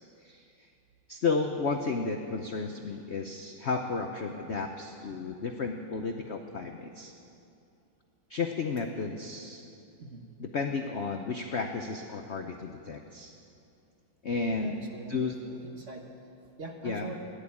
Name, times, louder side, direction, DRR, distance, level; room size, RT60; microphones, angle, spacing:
voice 1, 0.2-0.7 1.1-7.1 8.3-9.6 10.4-13.3 14.2-14.8 15.1-15.3 16.8-17.1, left 4 dB, 75° left, 4 dB, 0.6 m, -33 dB
voice 2, 14.4-16.1 16.6-17.2, right 2 dB, 40° right, 2 dB, 1.4 m, -43 dB
15.0 x 11.0 x 8.5 m, 2.6 s
omnidirectional pair, 2.2 m